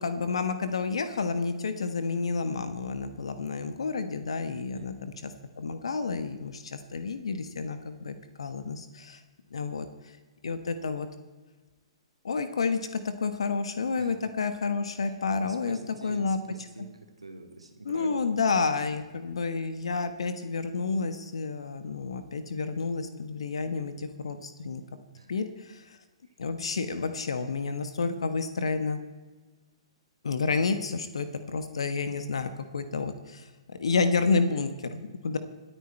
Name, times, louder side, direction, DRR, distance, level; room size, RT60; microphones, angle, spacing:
voice 1, 0.0-5.3 5.6-9.2 9.5-9.9 10.4-11.1 12.2-16.4 17.8-24.8 25.3-26.0 26.4-29.0 30.2-35.4, left 4 dB, 75° left, 10 dB, 1.2 m, -30 dB
voice 2, 4.6-4.9 14.0-14.1 15.4-16.9 17.2-18.1 18.8-19.0 25.1-25.3, right 2 dB, 90° right, 4 dB, 2.5 m, -45 dB
27.0 x 9.2 x 4.4 m, 1.3 s
figure-of-eight pair, 120°, 3 cm